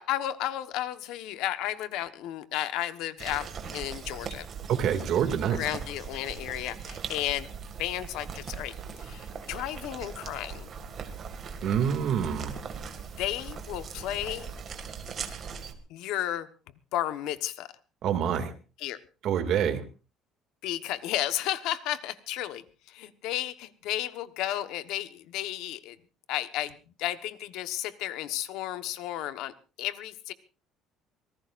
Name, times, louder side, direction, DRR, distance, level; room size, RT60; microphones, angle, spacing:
voice 1, 0.0-4.5 5.5-7.5 7.8-8.7 9.0-10.7 13.2-14.5 15.9-16.5 16.9-17.7 18.8-19.0 20.6-26.0 26.3-30.3, left 13 dB, 70° left, 11 dB, 1.2 m, -33 dB
sound 1, 3.2-15.7, right 6 dB, 35° right, 2.1 m, -40 dB
voice 2, 4.7-5.7 11.6-12.6 18.0-18.5 19.2-19.8, right 8 dB, 50° right, 7 dB, 2.3 m, -26 dB
25.5 x 18.5 x 2.6 m, 0.34 s
cardioid pair, 165°, 0 cm